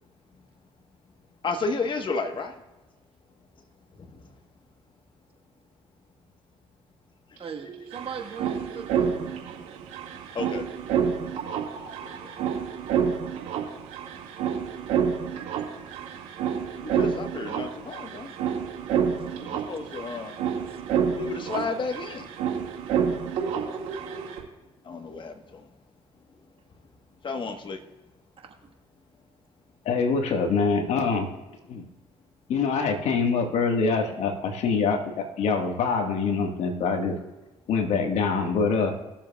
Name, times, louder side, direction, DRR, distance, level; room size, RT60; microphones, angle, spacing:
voice 1, 1.4-2.6 4.0-4.3 10.3-10.7 11.8-12.5 16.7-18.3 19.4-20.4 21.1-22.3 24.8-25.7 27.2-27.8, left 4 dB, 40° left, 6 dB, 1.2 m, -32 dB
voice 2, 7.4-9.2 18.3-18.4 19.2-19.3 20.7-20.8, right 6 dB, 50° right, 3 dB, 1.4 m, -39 dB
sound 1, 7.4-7.5 7.6-24.4, right 7 dB, 80° right, 1.9 m, -29 dB
voice 3, 29.8-31.3 31.7-31.9 32.5-37.1 37.7-38.9, left 4 dB, 65° left, 4 dB, 1.5 m, -25 dB
19.5 x 7.3 x 2.3 m, 1.0 s
supercardioid pair, 75°, 12 cm